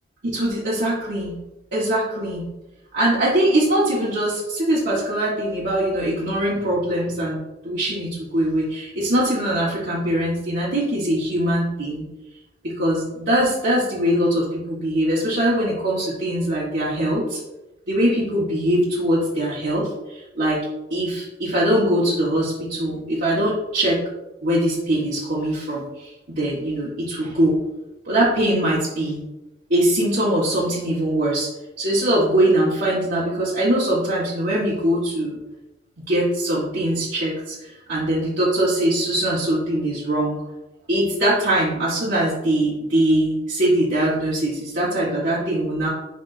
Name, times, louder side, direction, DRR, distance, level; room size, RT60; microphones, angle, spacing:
voice 1, 0.2-1.4 1.7-2.5 2.9-7.4 7.6-12.0 12.6-17.4 17.9-24.0 24.4-27.6 28.0-29.2 29.7-31.5 31.8-35.4 36.0-40.4 40.9-45.9, right 1 dB, 55° right, -9 dB, 1.5 m, -22 dB
10.5 x 3.6 x 2.7 m, 0.98 s
head